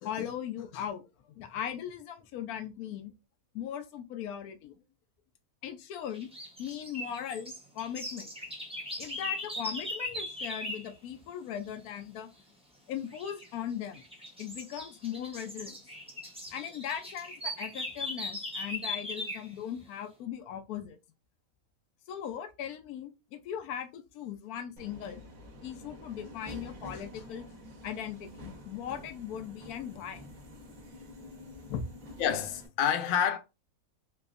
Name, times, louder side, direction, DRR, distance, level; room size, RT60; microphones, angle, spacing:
voice 1, 0.0-3.1 3.5-4.7 5.6-6.3 6.6-8.3 9.0-12.3 12.9-14.0 14.4-15.8 16.5-21.0 22.1-25.2 25.6-27.5 27.8-30.2 31.7-31.9, left 9 dB, 85° left, 1.1 m, -39 dB
sound 1, 6.1-10.9 13.1-13.5 13.9-19.5, left 1 dB, 5° right, 0.4 m, -39 dB
Subway metro underground, 24.8-32.7, equal, 65° right, 1.4 m, -48 dB
voice 2, 32.2-33.4, left 8 dB, 70° left, 0.5 m, -28 dB
3.5 x 3.0 x 2.4 m
omnidirectional pair, 1.5 m